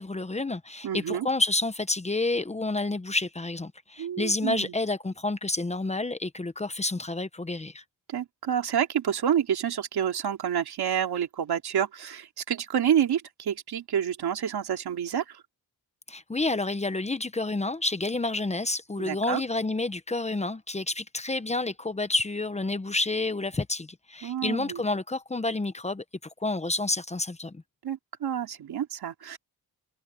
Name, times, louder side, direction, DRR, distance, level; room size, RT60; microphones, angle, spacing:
voice 1, 0.0-7.8 16.1-26.0 26.4-27.6, left 2 dB, 20° left, 0.9 m, -29 dB
voice 2, 0.8-1.3 4.0-4.7 8.1-15.4 19.0-19.4 24.2-24.8 27.8-29.4, right 9 dB, 90° right, 2.9 m, -28 dB
wide cardioid pair, 120°, 38 cm